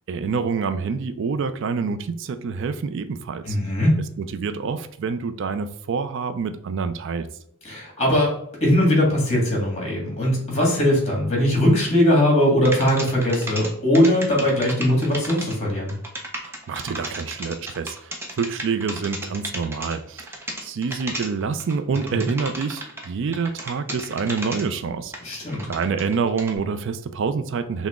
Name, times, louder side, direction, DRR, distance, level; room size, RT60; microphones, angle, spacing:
voice 1, 0.1-3.6 4.2-7.3 16.4-25.1 25.7-27.9, right 5 dB, 60° right, 10 dB, 0.4 m, -27 dB
voice 2, 3.5-4.0 7.6-8.3 8.6-15.9 22.1-22.2 25.2-25.7, left 1 dB, 30° left, -1 dB, 1.6 m, -20 dB
sound 1, 12.7-13.7 13.9-23.1 23.3-24.6 25.1-26.6, right 1 dB, 10° right, 0.6 m, -33 dB
5.8 x 2.1 x 3.5 m, 0.69 s
head